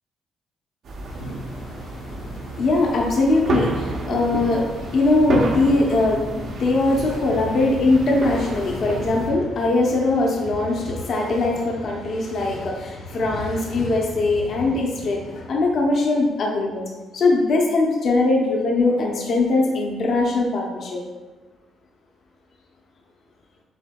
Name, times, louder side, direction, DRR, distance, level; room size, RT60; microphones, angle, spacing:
sound 1, 0.8-9.3, right 2 dB, 65° right, 0.7 m, -30 dB
voice 1, 1.1-16.8 17.1-21.0, left 2 dB, 60° left, -1 dB, 0.7 m, -21 dB
sound 2, 4.6-15.9, left 1 dB, 85° left, 1.0 m, -38 dB
7.0 x 2.7 x 2.3 m, 1.2 s
cardioid pair, 90°, 0 cm